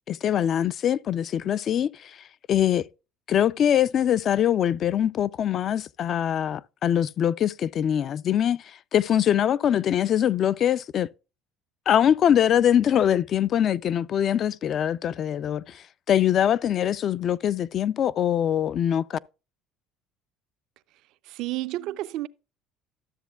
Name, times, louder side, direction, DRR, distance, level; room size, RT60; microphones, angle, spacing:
voice 1, 0.1-2.1 2.5-2.8 3.3-8.6 8.9-11.1 11.9-19.2, left 10 dB, 50° left, 0.3 m, -23 dB
voice 2, 21.2-22.3, right 16 dB, 70° right, 0.4 m, -31 dB
12.5 x 7.3 x 2.3 m
supercardioid pair, 90°, 0 cm